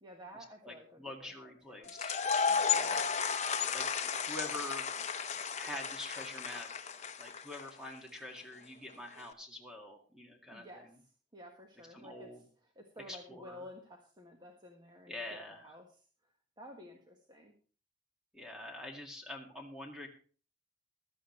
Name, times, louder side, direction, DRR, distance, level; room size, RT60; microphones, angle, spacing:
voice 1, 0.0-1.9 2.5-3.0 10.5-10.9 11.3-12.3 12.7-15.9 16.6-17.6, left 1 dB, 25° right, 2 dB, 1.6 m, -52 dB
voice 2, 0.6-2.2 2.6-3.1 3.7-4.9 5.6-6.7 7.2-11.0 11.9-12.4 13.1-13.6 15.1-15.8 18.3-20.1, left 1 dB, 5° right, 1 dB, 2.2 m, -45 dB
sound 1, 1.9-7.9, left 6 dB, 40° left, 0.9 m, -34 dB
15.5 x 13.0 x 3.2 m, 0.39 s
head